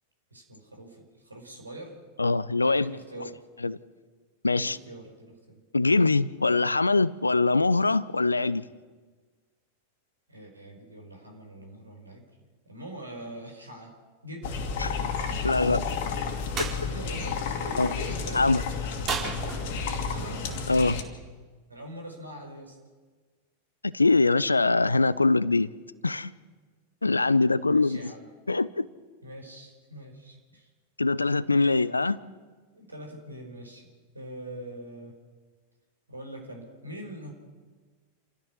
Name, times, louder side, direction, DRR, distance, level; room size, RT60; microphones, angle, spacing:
voice 1, 0.3-2.0 2.6-3.5 4.5-5.6 10.3-12.2 12.6-13.9 14.2-14.6 15.2-15.4 16.8-18.5 19.7-20.4 21.7-22.8 27.7-28.3 29.2-30.7 31.5-31.9 32.7-33.9 34.1-35.1 36.1-37.3, right 1 dB, 80° right, 4.8 m, -43 dB
voice 2, 2.2-2.9 3.6-3.8 4.4-4.8 5.7-8.6 14.8-15.0 15.4-15.8 16.6-16.7 17.8-17.9 18.3-18.6 20.7-21.0 23.8-25.7 26.0-26.3 27.0-28.1 28.5-28.9 31.0-32.2, left 3 dB, 80° left, 0.6 m, -23 dB
sound 1, 14.4-21.0, left 5 dB, 50° left, 2.6 m, -31 dB
sound 2, 16.5-16.8 19.0-20.0, right 5 dB, 30° right, 4.5 m, -32 dB
29.0 x 14.0 x 6.4 m
figure-of-eight pair, 90°, 0 cm